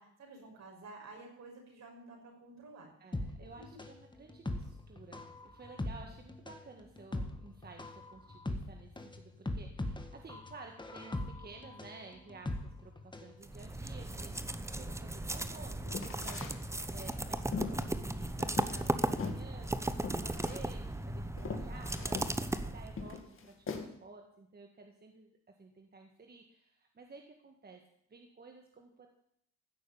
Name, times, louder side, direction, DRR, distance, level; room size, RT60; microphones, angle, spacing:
voice 1, 0.0-2.9 3.6-3.8 5.9-6.2, right 2 dB, 60° right, 0 dB, 5.8 m, -52 dB
voice 2, 3.0-25.3 25.6-27.8 28.1-29.1, right 3 dB, 30° right, 3 dB, 1.8 m, -53 dB
sound 1, 3.1-13.3 13.6-13.7, left 2 dB, 15° left, 1.7 m, -40 dB
sound 2, 13.4-23.2, right 1 dB, 10° right, 0.9 m, -36 dB
sound 3, 15.9-16.6 17.0-18.9 19.2-19.4 20.0-20.6 21.0-21.1 21.4-22.3 23.0-23.8, left 5 dB, 45° left, 2.4 m, -40 dB
15.0 x 6.4 x 8.6 m, 0.70 s
cardioid pair, 90°, 30 cm